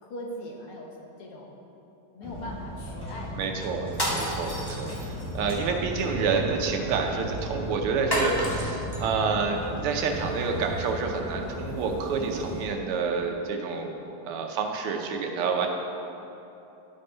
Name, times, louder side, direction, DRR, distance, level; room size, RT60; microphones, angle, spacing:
voice 1, 0.0-1.6 2.1-3.7, equal, 85° left, -1 dB, 2.0 m, -40 dB
sound 1, 2.2-12.7, equal, 5° left, 1.4 m, -35 dB
voice 2, 3.3-15.7, right 5 dB, 85° right, 3 dB, 1.7 m, -28 dB
sound 2, 3.9-5.4 8.1-9.0, equal, 20° left, 0.7 m, -30 dB
12.0 x 5.5 x 3.9 m, 2.9 s
omnidirectional pair, 2.4 m